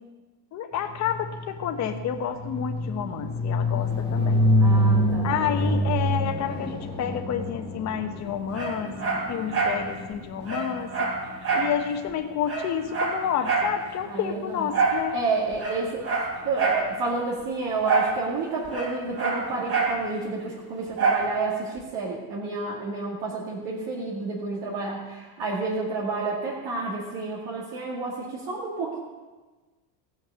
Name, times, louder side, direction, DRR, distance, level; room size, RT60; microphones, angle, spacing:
voice 1, 0.5-4.4 5.2-8.9 9.3-11.1 11.5-15.2, left 8 dB, 35° left, 6 dB, 1.0 m, -30 dB
sound 1, 1.0-10.9, left 1 dB, 10° left, 1.3 m, -26 dB
voice 2, 4.6-5.3 14.0-14.7 15.1-16.1 16.4-29.0, right 3 dB, 55° right, -4 dB, 2.3 m, -30 dB
Dog, 8.5-9.8 10.1-10.2 10.5-11.7 12.1-12.2 12.4-13.7 14.7-15.0 15.5-16.9 17.8-18.2 18.4-20.0 21.0-21.3 21.8-21.9, right 4 dB, 30° right, 3.1 m, -26 dB
17.0 x 6.4 x 6.9 m, 1.3 s
cardioid pair, 170°, 48 cm